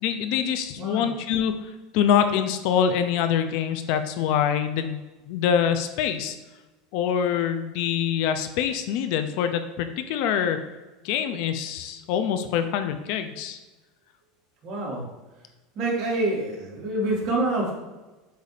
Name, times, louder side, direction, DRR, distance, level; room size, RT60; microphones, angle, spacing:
voice 1, 0.0-1.5 1.9-6.4 6.9-10.6 11.0-13.6, left 8 dB, 60° left, 9 dB, 0.5 m, -25 dB
voice 2, 0.8-1.1 14.6-15.0 15.7-17.7, right 2 dB, 45° right, -3 dB, 2.1 m, -26 dB
7.9 x 2.7 x 4.9 m, 1.1 s
supercardioid pair, 140°, 0 cm